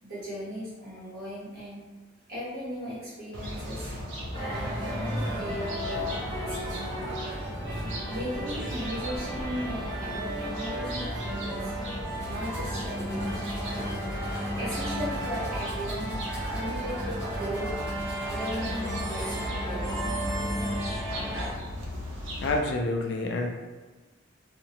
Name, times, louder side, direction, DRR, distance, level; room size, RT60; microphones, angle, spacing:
voice 1, 0.0-1.8 2.3-3.9 4.4-7.1 8.1-11.8 12.3-13.9 14.6-16.2 16.5-17.7 18.3-20.3, equal, 45° right, -9 dB, 1.2 m, -37 dB
sound 1, 3.3-22.6, equal, 70° right, 0.6 m, -37 dB
sound 2, 4.3-21.5, equal, 25° right, 1.2 m, -34 dB
Domestic sounds home sounds, 12.2-19.5, equal, 5° right, 1.4 m, -49 dB
voice 2, 22.4-23.5, left 2 dB, 55° left, 2 dB, 0.3 m, -28 dB
2.8 x 2.0 x 2.7 m, 1.3 s
head